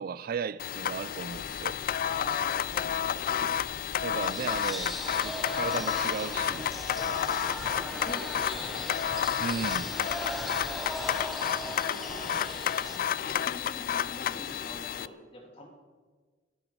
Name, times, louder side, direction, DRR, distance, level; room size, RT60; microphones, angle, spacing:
voice 1, 0.0-1.8 4.0-5.0 5.2-6.7 9.4-9.9, right 6 dB, 55° right, 0.3 m, -35 dB
sound 1, 0.6-15.1, left 9 dB, 50° left, 0.3 m, -31 dB
sound 2, 1.3-11.3, left 2 dB, 75° left, 0.8 m, -49 dB
voice 2, 2.0-3.5 7.8-8.8 9.4-9.8 11.4-12.4 12.9-15.7, equal, 30° left, 2.6 m, -45 dB
sound 3, 4.2-13.0, equal, ahead, 0.9 m, -38 dB
25.0 x 9.0 x 4.6 m
head